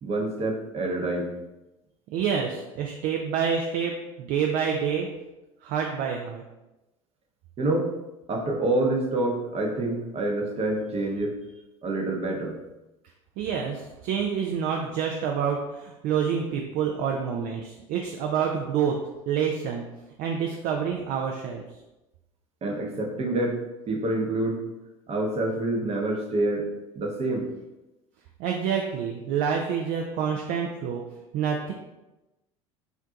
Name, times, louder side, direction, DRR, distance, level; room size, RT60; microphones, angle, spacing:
voice 1, 0.0-1.3 7.6-7.9 8.3-11.4 11.8-12.6 22.6-23.6 23.9-24.6 25.1-26.7 26.9-27.5, right 2 dB, 35° right, 0 dB, 0.8 m, -27 dB
voice 2, 2.1-5.1 5.6-6.4 13.4-19.0 19.3-19.8 20.2-21.6 28.4-31.0 31.3-31.7, right 7 dB, 50° right, 1 dB, 0.4 m, -27 dB
2.4 x 2.2 x 3.8 m, 1.0 s
hypercardioid pair, 70°, 18 cm